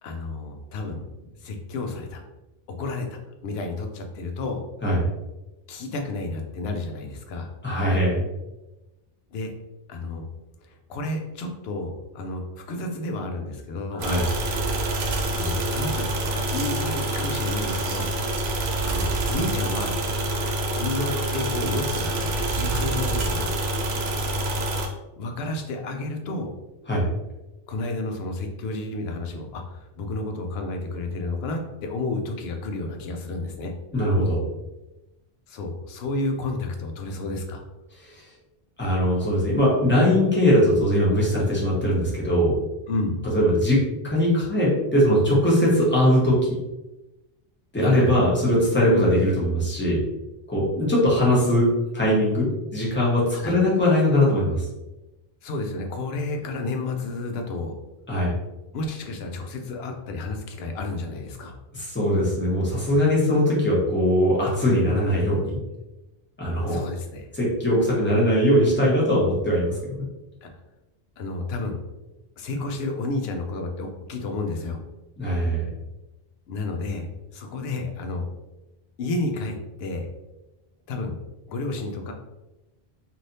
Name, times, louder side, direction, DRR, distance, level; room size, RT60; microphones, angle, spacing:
voice 1, 0.0-2.2 2.8-4.6 5.7-7.5 9.3-9.5 9.9-10.2 10.6-14.1 15.4-18.2 18.8-20.1 20.7-23.5 25.2-26.5 27.7-33.7 35.5-37.6 42.9-43.2 47.8-48.2 53.3-53.6 55.4-57.7 58.7-61.5 66.7-67.3 70.4-70.5 71.2-71.8 72.4-74.8 76.5-77.1 77.3-78.3 79.0-80.1 80.9-81.2 81.5-82.1, left 2 dB, 80° left, 4 dB, 0.8 m, -31 dB
voice 2, 7.6-8.3 14.0-14.2 26.9-27.0 33.9-34.4 38.1-38.2 38.8-42.6 43.3-46.6 47.7-50.0 50.5-51.7 51.9-54.7 58.1-58.3 61.7-65.6 66.4-66.8 67.3-70.1 75.2-75.7, equal, 10° left, -6 dB, 0.9 m, -21 dB
sound 1, 14.0-24.9, right 1 dB, 80° right, 0.8 m, -26 dB
3.2 x 2.7 x 2.6 m, 1.0 s
omnidirectional pair, 1.0 m